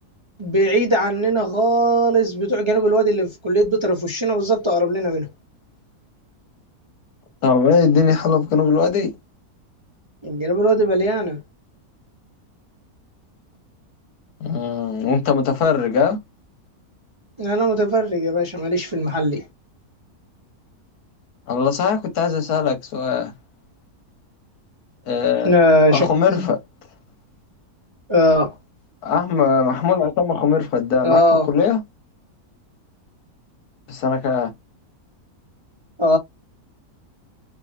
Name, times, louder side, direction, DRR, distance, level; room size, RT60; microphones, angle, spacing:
voice 1, 0.4-5.3 10.2-11.4 17.4-19.4 25.4-26.5 28.1-28.5 31.0-31.5 36.0-36.2, equal, 30° right, 0.5 m, -19 dB
voice 2, 7.4-9.1 14.4-16.2 21.5-23.3 25.1-25.6 25.9-26.6 29.0-31.2 31.5-31.8 33.9-34.5, left 6 dB, 80° left, 1.4 m, -19 dB
3.3 x 2.4 x 2.5 m
omnidirectional pair, 1.6 m